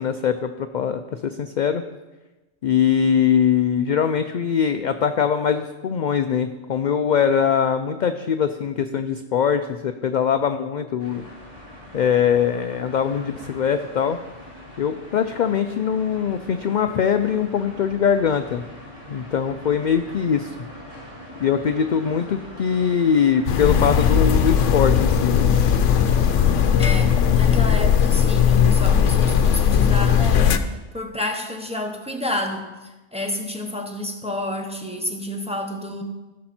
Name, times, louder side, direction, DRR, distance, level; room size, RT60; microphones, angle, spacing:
voice 1, 0.0-1.8 2.6-11.3 11.9-14.2 14.8-18.6 19.1-20.5 21.4-25.5, left 7 dB, 60° left, 9 dB, 0.5 m, -22 dB
sound 1, 11.0-26.7, left 1 dB, 30° right, 2.3 m, -42 dB
sound 2, 23.5-30.6, left 8 dB, 80° left, 1.0 m, -18 dB
voice 2, 26.8-36.0, left 1 dB, 5° right, 2 dB, 1.0 m, -30 dB
15.5 x 6.4 x 4.3 m, 1.1 s
omnidirectional pair, 1.3 m